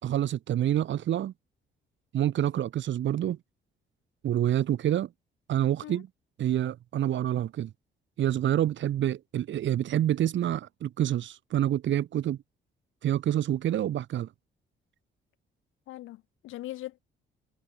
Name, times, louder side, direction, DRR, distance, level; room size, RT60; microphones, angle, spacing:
voice 1, 0.0-1.3 2.1-3.4 4.2-5.1 5.5-6.1 6.4-7.7 8.2-12.4 13.0-14.3, right 11 dB, 70° right, 2.2 m, -27 dB
voice 2, 15.9-17.0, left 15 dB, 90° left, 6.4 m, -40 dB
cardioid pair, 90°, 20 cm